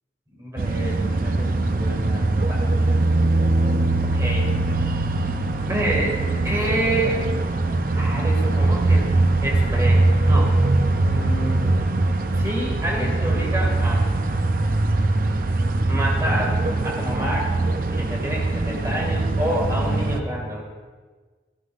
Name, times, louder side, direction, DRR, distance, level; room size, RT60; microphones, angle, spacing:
voice 1, 0.3-3.2 4.0-4.5 5.6-6.2 6.4-7.2 7.9-9.2 9.4-10.5 11.0-11.8 12.4-14.1 15.9-17.5 17.9-20.6, right 1 dB, 15° right, -3 dB, 2.1 m, -28 dB
sound 1, 0.6-20.2, right 2 dB, 50° right, 0.5 m, -21 dB
13.5 x 11.5 x 2.5 m, 1.4 s
head